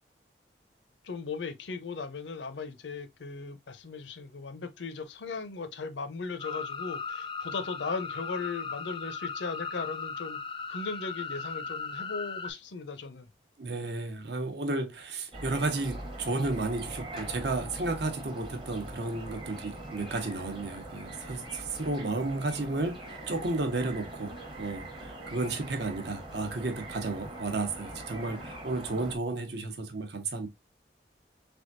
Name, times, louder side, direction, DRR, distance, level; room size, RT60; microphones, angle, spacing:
voice 1, 1.0-10.4 10.7-13.3, left 4 dB, 75° left, 0.6 m, -37 dB
sound 1, 6.4-12.5, left 5 dB, 25° left, 0.3 m, -37 dB
voice 2, 13.6-30.5, right 2 dB, 65° right, 0.8 m, -33 dB
sound 2, 15.3-29.2, right 1 dB, 25° right, 0.8 m, -42 dB
3.5 x 3.4 x 2.4 m
head